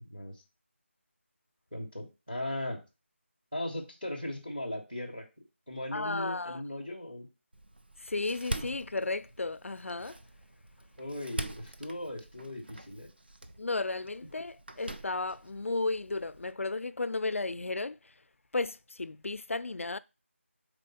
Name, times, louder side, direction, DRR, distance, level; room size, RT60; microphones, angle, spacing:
voice 1, 1.7-2.8 3.5-5.2 5.7-7.2 11.0-13.1, left 1 dB, 5° right, 0.6 m, -38 dB
voice 2, 5.9-6.6 8.0-10.2 13.6-18.0 18.5-20.0, left 3 dB, 75° left, 0.4 m, -34 dB
Door, 7.5-16.5, right 1 dB, 50° right, 0.6 m, -44 dB
4.2 x 4.0 x 5.5 m
figure-of-eight pair, 180°, 7 cm